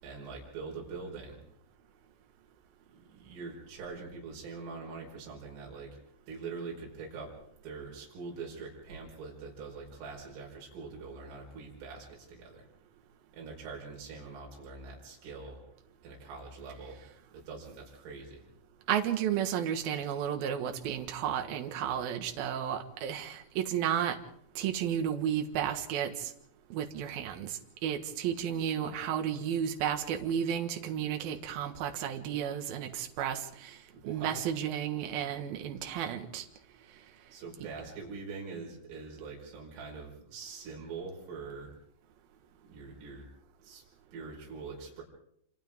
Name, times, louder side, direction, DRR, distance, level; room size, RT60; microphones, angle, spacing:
voice 1, 0.0-1.4 2.9-6.0 6.3-7.3 7.6-12.7 13.3-15.6 16.0-17.0 17.3-18.5 33.9-34.5 37.3-41.7 42.4-43.3 43.6-43.8 44.1-45.0, right 4 dB, 80° right, -2 dB, 7.4 m, -43 dB
voice 2, 18.9-24.2 24.6-26.3 26.7-33.8 34.1-36.4, right 9 dB, 60° right, 5 dB, 3.0 m, -32 dB
28.0 x 27.5 x 3.7 m, 0.70 s
omnidirectional pair, 5.7 m